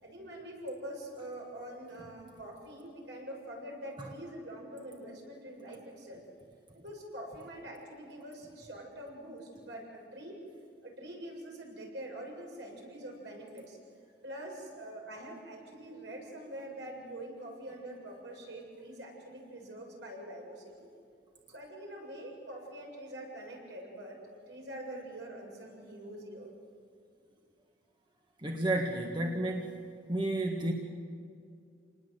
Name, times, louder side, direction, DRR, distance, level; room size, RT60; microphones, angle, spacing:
voice 1, 0.0-6.2 6.8-10.4 10.8-13.8 14.2-20.9 21.5-24.2 24.5-26.5, right 1 dB, 70° right, 0 dB, 7.2 m, -45 dB
voice 2, 28.4-29.8 30.1-30.7, right 1 dB, 25° right, 1 dB, 1.7 m, -31 dB
28.0 x 20.0 x 8.1 m, 2.4 s
head